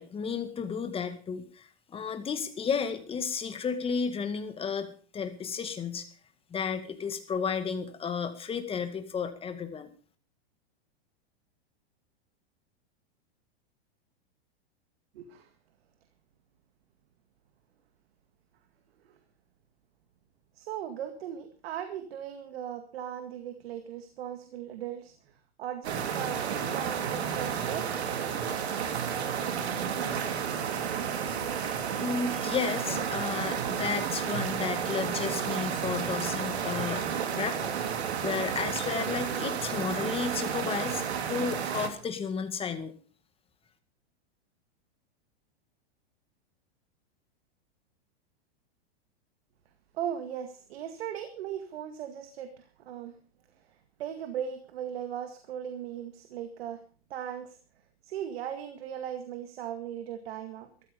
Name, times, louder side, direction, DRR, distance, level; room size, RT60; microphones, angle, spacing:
voice 1, 0.0-6.1 6.5-9.9 31.9-37.0 37.3-42.9, left 6 dB, 20° left, 9 dB, 2.0 m, -33 dB
voice 2, 15.2-15.5 20.6-25.1 25.6-28.0 31.4-31.5 49.9-53.2 54.0-56.8 57.1-57.6 58.0-60.7, right 9 dB, 70° right, 8 dB, 2.1 m, -38 dB
sound 1, 25.8-41.9, right 7 dB, 85° right, 2.9 m, -31 dB
14.0 x 14.0 x 5.3 m, 0.39 s
hypercardioid pair, 135°, 32 cm